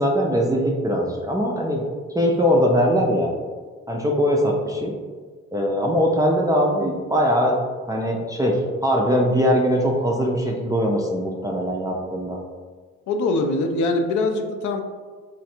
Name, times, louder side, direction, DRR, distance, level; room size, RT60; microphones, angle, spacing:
voice 1, 0.0-1.9 2.1-3.3 3.9-4.9 5.5-12.4, equal, 10° right, -3 dB, 0.3 m, -21 dB
voice 2, 13.1-14.8, left 2 dB, 75° left, 5 dB, 0.5 m, -22 dB
3.1 x 2.5 x 2.7 m, 1.5 s
cardioid pair, 90°, 30 cm